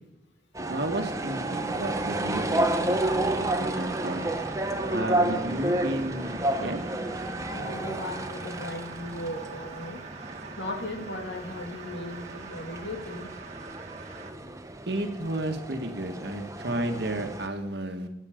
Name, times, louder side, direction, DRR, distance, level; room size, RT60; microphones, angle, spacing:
sound 1, 0.5-17.5, right 1 dB, 15° right, 0.8 m, -31 dB
voice 1, 0.7-4.3 4.9-6.8 14.9-18.1, right 1 dB, 55° right, 5 dB, 1.7 m, -32 dB
sound 2, 2.6-14.3, right 4 dB, 35° right, 1.7 m, -44 dB
voice 2, 7.5-10.0 10.6-13.3, left 1 dB, 65° left, 4 dB, 2.2 m, -37 dB
26.5 x 9.1 x 5.1 m, 0.94 s
head